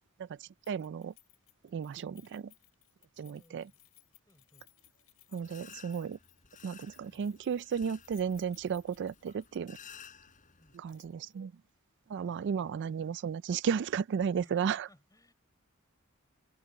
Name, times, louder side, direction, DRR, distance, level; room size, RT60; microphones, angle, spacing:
voice 1, 0.2-1.1 1.6-2.5 3.2-3.7 5.3-6.2 6.6-9.8 10.7-11.5 12.1-14.9, right 7 dB, 55° right, 0.3 m, -34 dB
Keys jangling, 0.6-9.8 10.1-10.2 10.9-11.4 11.7-11.8, left 18 dB, 80° left, 7.5 m, -63 dB
voice 2, 3.2-3.8 4.3-4.7 7.1-7.2 10.6-11.0 12.2-13.0 14.4-15.3, left 1 dB, 15° left, 5.8 m, -63 dB
sound 1, 5.4-10.8, left 7 dB, 40° left, 4.9 m, -55 dB
open air
head